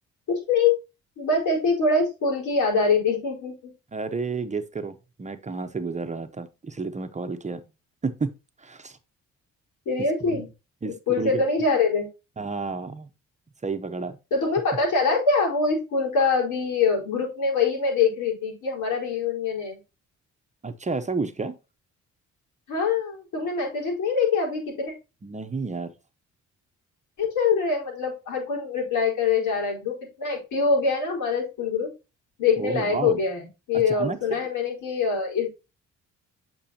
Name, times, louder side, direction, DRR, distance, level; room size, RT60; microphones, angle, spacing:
voice 1, 0.3-0.8 1.2-3.7 9.9-10.5 10.8-12.1 14.3-19.8 22.7-24.9 27.2-31.9 32.4-33.4 33.7-35.5, left 4 dB, 80° left, 4.5 m, -24 dB
voice 2, 3.9-7.6 8.0-8.3 8.6-9.0 10.2-10.4 10.8-11.4 12.4-13.1 13.6-14.2 20.6-21.5 25.2-25.9 32.6-33.2 33.9-34.2, right 4 dB, 25° right, 0.9 m, -31 dB
8.7 x 6.0 x 2.8 m
cardioid pair, 90°, 30 cm